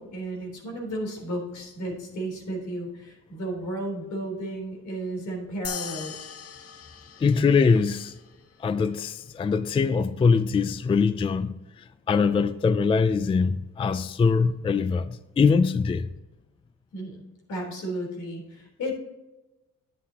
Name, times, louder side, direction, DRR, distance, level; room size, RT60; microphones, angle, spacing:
voice 1, 0.0-6.2 16.9-17.2 17.5-19.0, right 1 dB, 75° left, 3.5 m, -33 dB
sound 1, 5.6-8.4, left 7 dB, 50° left, 0.8 m, -39 dB
voice 2, 7.2-8.1 8.6-16.1, left 5 dB, 20° left, 0.3 m, -23 dB
9.4 x 9.4 x 2.8 m
cardioid pair, 90°, 30 cm